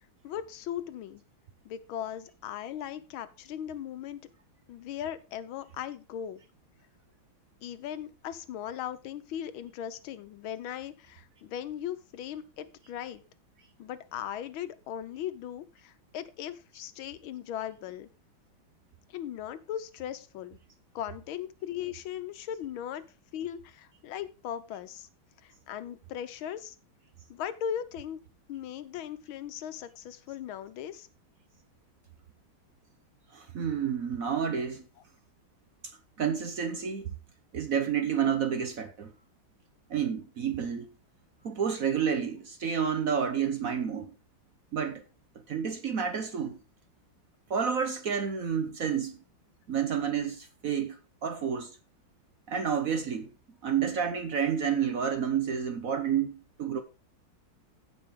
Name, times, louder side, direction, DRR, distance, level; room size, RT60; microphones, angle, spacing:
voice 1, 0.2-1.2 1.6-4.3 4.7-6.4 7.6-13.2 13.8-18.1 19.1-20.6 20.9-23.0 23.3-25.1 25.4-26.8 27.3-28.2 28.5-31.1, left 10 dB, 80° left, 1.6 m, -38 dB
voice 2, 33.3-34.8 36.2-37.1 37.5-39.1 39.9-40.9 41.4-44.1 44.7-45.0 45.5-46.6 47.5-49.1 49.7-51.8 52.5-53.3 53.6-56.8, right 7 dB, 55° right, 1.1 m, -30 dB
15.5 x 5.4 x 3.6 m
omnidirectional pair, 2.2 m